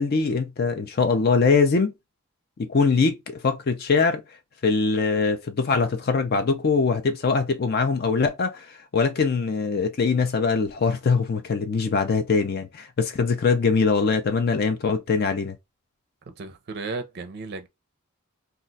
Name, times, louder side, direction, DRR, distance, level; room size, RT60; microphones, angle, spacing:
voice 1, 0.0-1.9 2.6-4.2 4.6-15.6, left 4 dB, 45° left, 0.4 m, -22 dB
voice 2, 16.3-17.7, right 3 dB, 50° right, 0.5 m, -34 dB
2.4 x 2.2 x 3.8 m
head